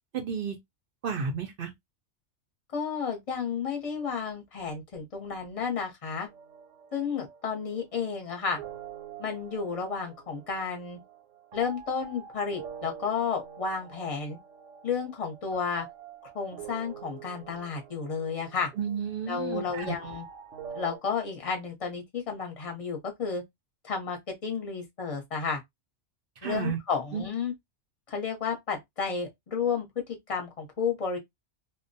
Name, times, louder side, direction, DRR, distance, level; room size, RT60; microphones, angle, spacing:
voice 1, 0.1-0.6 1.0-1.7 18.8-19.9 26.4-26.8 27.1-27.2, right 6 dB, 60° right, 0.6 m, -32 dB
voice 2, 2.7-6.3 6.9-8.6 9.2-11.0 11.5-14.4 14.8-15.9 16.2-18.7 19.3-20.2 20.7-23.4 23.8-25.6 26.4-27.5 28.1-31.2, left 5 dB, 35° left, 0.7 m, -32 dB
sound 1, 6.3-21.0, right 7 dB, 85° right, 1.0 m, -46 dB
2.3 x 2.1 x 2.6 m
omnidirectional pair, 1.3 m